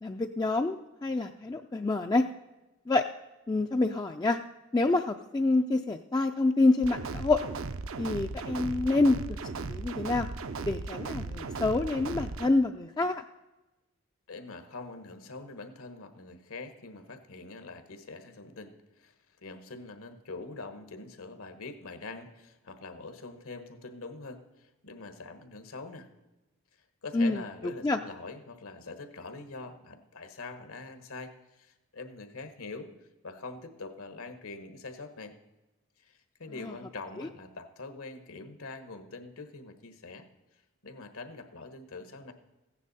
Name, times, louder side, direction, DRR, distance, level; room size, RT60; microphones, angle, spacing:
voice 1, 0.0-2.2 2.9-3.0 3.5-4.4 4.7-7.4 8.0-10.3 10.6-13.2 27.1-28.0 36.6-36.7 37.2-37.3, left 2 dB, 20° left, 4 dB, 0.3 m, -27 dB
sound 1, 6.8-12.5, right 3 dB, 65° right, 0.6 m, -37 dB
voice 2, 14.3-19.1 19.4-26.1 27.0-32.9 33.2-35.3 36.0-40.2 40.8-42.3, left 3 dB, 80° left, 8 dB, 1.2 m, -44 dB
15.0 x 9.9 x 4.1 m, 1.0 s
head